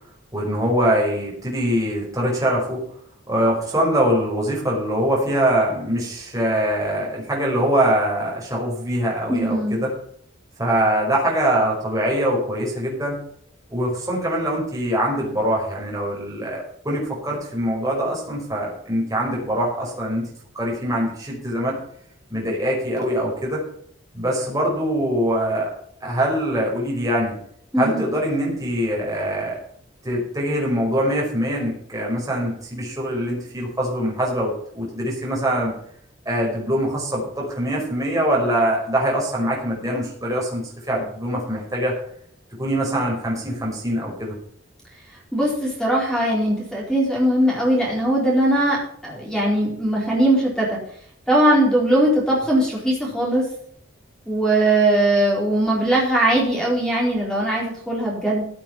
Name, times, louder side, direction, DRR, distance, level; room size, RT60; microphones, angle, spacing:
voice 1, 0.3-2.8 3.3-9.9 10.6-13.2 13.7-20.3 20.5-21.7 22.3-23.6 24.1-25.7 26.0-27.3 27.8-29.6 30.0-35.7 36.2-41.9 42.6-44.3, equal, 15° right, -4 dB, 4.9 m, -23 dB
voice 2, 9.3-9.8 27.7-28.1 45.3-50.8 51.3-53.5 54.3-58.4, right 1 dB, 5° left, -3 dB, 4.5 m, -20 dB
15.0 x 7.6 x 5.7 m, 0.65 s
head